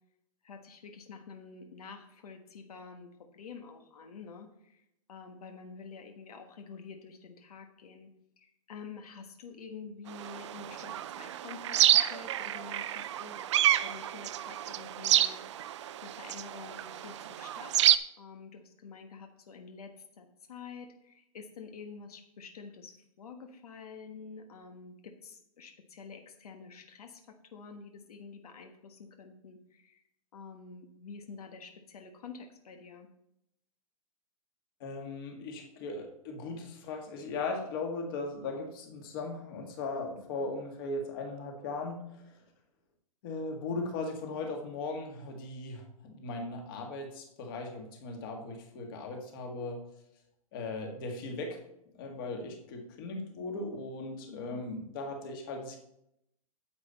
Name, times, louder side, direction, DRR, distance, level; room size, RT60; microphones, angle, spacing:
voice 1, 0.4-4.8 5.1-8.1 8.4-13.4 13.8-15.4 16.0-30.0 30.3-33.1 54.3-54.6, left 5 dB, 85° left, 5 dB, 1.4 m, -48 dB
sound 1, 10.1-18.0, right 12 dB, 50° right, 0.5 m, -29 dB
voice 2, 34.8-42.2 43.2-49.8 50.5-51.6 52.0-55.8, left 3 dB, 35° left, 2 dB, 1.9 m, -38 dB
9.5 x 8.4 x 4.1 m, 0.78 s
hypercardioid pair, 170°, 19 cm